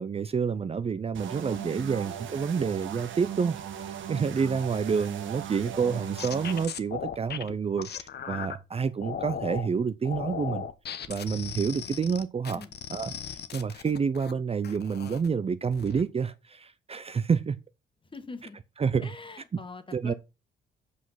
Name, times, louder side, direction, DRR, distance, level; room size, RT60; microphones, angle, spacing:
voice 1, 0.0-3.6 3.8-10.7 11.1-12.6 12.9-17.6 18.8-19.1 19.9-20.1, right 6 dB, 30° right, 0.6 m, -28 dB
sound 1, 1.1-6.7, right 10 dB, 75° right, 1.5 m, -38 dB
voice 2, 1.5-2.2 12.5-12.7 18.0-18.6 19.0-20.1, left 3 dB, 25° left, 1.7 m, -44 dB
sound 2, 5.7-8.6 9.0-9.7 10.1-14.3 14.6-15.3 15.7-16.0, left 8 dB, 55° left, 1.1 m, -37 dB
8.3 x 5.0 x 5.7 m
cardioid pair, 90°, 20 cm